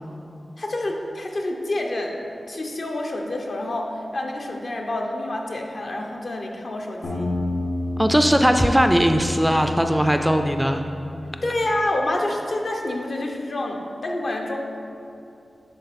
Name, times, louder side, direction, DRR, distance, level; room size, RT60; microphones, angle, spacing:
voice 1, 0.6-2.1 2.5-7.3 11.4-14.6, left 1 dB, 60° left, 1 dB, 0.9 m, -28 dB
sound 1, 7.0-11.7, left 2 dB, 80° left, 1.7 m, -30 dB
voice 2, 8.0-10.8, equal, 5° right, 6 dB, 0.3 m, -19 dB
10.5 x 3.8 x 4.2 m, 2.7 s
wide cardioid pair, 75°, 0 cm